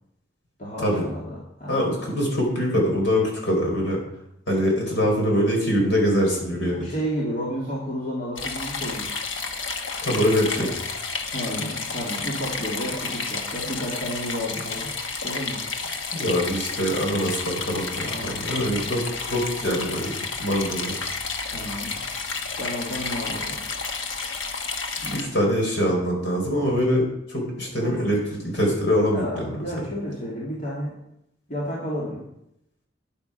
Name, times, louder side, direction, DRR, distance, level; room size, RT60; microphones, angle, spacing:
voice 1, 0.6-1.9 6.7-9.1 10.6-10.7 11.3-14.9 15.2-15.6 18.0-18.8 19.6-20.0 21.5-22.0 22.6-23.6 25.0-25.2 27.8-28.0 29.1-30.9 31.5-32.2, equal, 45° left, -6 dB, 2.6 m, -32 dB
voice 2, 1.7-4.0 4.5-6.9 10.0-10.7 16.1-20.1 20.4-21.0 25.1-29.4, equal, 65° left, 0 dB, 4.0 m, -23 dB
sound 1, 8.4-25.2, left 4 dB, 90° left, 1.3 m, -31 dB
10.5 x 8.6 x 5.8 m, 0.79 s
head